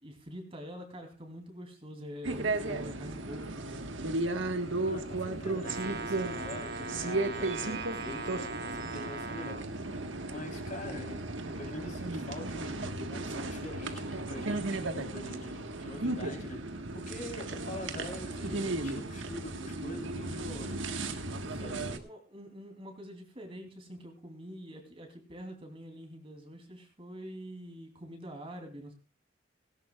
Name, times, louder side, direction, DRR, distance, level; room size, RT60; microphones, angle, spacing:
voice 1, 0.0-3.8 21.5-28.9, equal, 30° right, 3 dB, 3.0 m, -46 dB
sound 1, 2.2-22.0, right 2 dB, 85° right, 1.5 m, -35 dB
voice 2, 4.9-11.3 11.5-20.8 21.4-22.0, left 1 dB, 40° left, 3 dB, 3.6 m, -44 dB
Brass instrument, 5.6-9.7, right 3 dB, 55° right, 1.4 m, -40 dB
17.5 x 17.5 x 2.4 m, 0.30 s
head